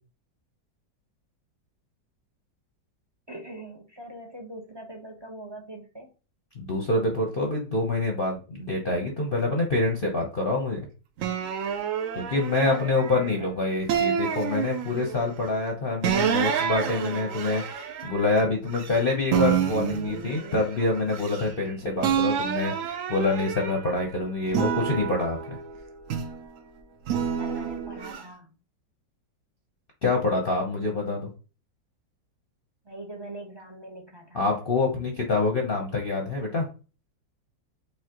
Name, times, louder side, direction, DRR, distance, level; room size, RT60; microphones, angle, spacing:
voice 1, 3.3-6.1 12.6-12.8 13.1-13.5 27.4-28.5 32.8-34.4, right 1 dB, 30° right, 1 dB, 0.4 m, -42 dB
voice 2, 6.5-10.9 12.2-25.6 30.0-31.3 34.3-36.7, left 2 dB, 45° left, 0 dB, 0.7 m, -26 dB
sound 1, 11.2-13.4 13.9-15.2 16.0-19.0 19.3-21.7 22.0-24.0 24.5-26.5 27.1-28.2, right 8 dB, 80° right, 0.7 m, -28 dB
5.5 x 3.2 x 2.9 m, 0.34 s
omnidirectional pair, 2.0 m